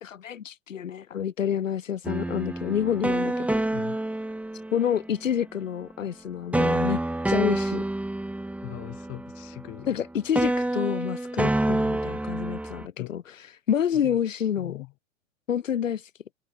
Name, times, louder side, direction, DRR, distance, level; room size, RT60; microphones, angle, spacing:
voice 1, 0.0-3.6 4.7-7.0 7.3-7.8 9.9-14.7 15.5-16.1, left 9 dB, 85° left, 0.6 m, -28 dB
sound 1, 2.0-5.2 6.5-10.0 10.3-12.9, right 1 dB, 5° right, 1.9 m, -28 dB
voice 2, 3.7-4.0 8.6-10.0 13.0-13.2 13.9-14.2 14.6-14.9, left 24 dB, 40° left, 6.8 m, -40 dB
figure-of-eight pair, 100°, 38 cm